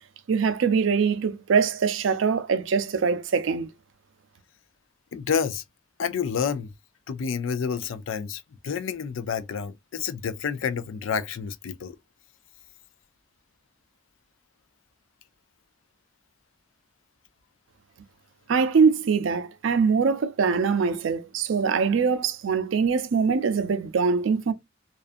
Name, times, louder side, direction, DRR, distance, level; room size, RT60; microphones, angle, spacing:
voice 1, 0.3-3.7 18.5-24.5, right 5 dB, 70° right, 0.4 m, -23 dB
voice 2, 5.1-5.6 6.0-6.7 7.1-12.0, left 6 dB, 85° left, 0.4 m, -29 dB
2.4 x 2.3 x 2.4 m
head